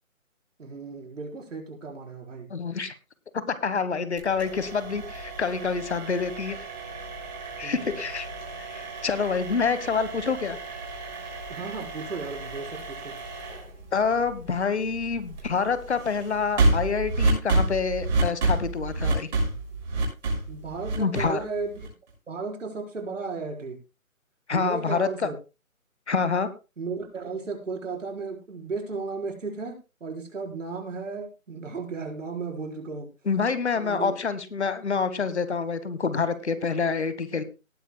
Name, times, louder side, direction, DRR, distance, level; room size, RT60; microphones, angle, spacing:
voice 1, 0.6-2.5 7.6-8.0 11.5-13.1 20.5-21.9 22.3-23.8 24.5-25.4 26.8-33.1 33.7-34.2, right 4 dB, 65° right, 1 dB, 4.5 m, -35 dB
voice 2, 2.5-2.9 3.6-6.7 7.6-8.3 8.6-10.6 13.9-19.3 21.0-21.4 24.5-25.3 26.1-26.5 33.3-37.4, left 5 dB, 55° left, 13 dB, 1.4 m, -27 dB
sound 1, 4.2-22.1, right 2 dB, 30° right, 6.2 m, -30 dB
18.5 x 10.5 x 2.2 m, 0.30 s
hypercardioid pair, 170°, 41 cm